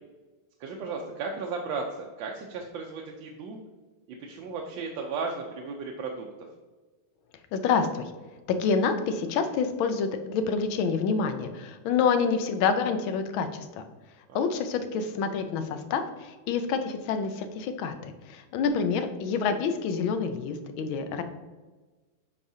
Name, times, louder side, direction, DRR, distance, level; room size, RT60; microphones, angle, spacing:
voice 1, 0.6-3.6 4.1-6.3 14.3-14.4, right 4 dB, 75° right, 0 dB, 1.4 m, -35 dB
voice 2, 7.5-8.1 8.5-13.9 14.3-21.2, left 5 dB, 85° left, 8 dB, 1.5 m, -27 dB
8.3 x 5.0 x 2.7 m, 1.3 s
omnidirectional pair, 2.1 m